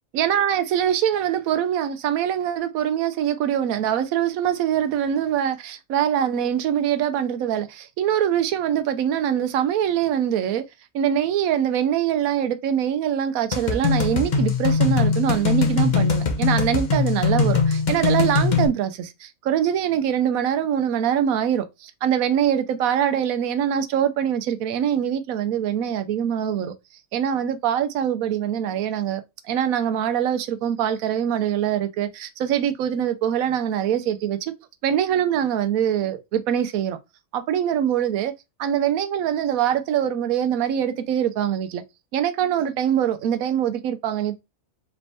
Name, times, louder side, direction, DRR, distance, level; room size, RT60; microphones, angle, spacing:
voice 1, 0.1-10.6 10.9-26.7 27.1-29.2 29.5-34.5 34.8-37.0 37.3-38.3 38.6-41.8 42.1-44.4, right 9 dB, 85° right, 1.0 m, -23 dB
sound 1, 13.5-18.7, left 5 dB, 40° left, 0.8 m, -21 dB
4.2 x 3.3 x 2.6 m
omnidirectional pair, 1.4 m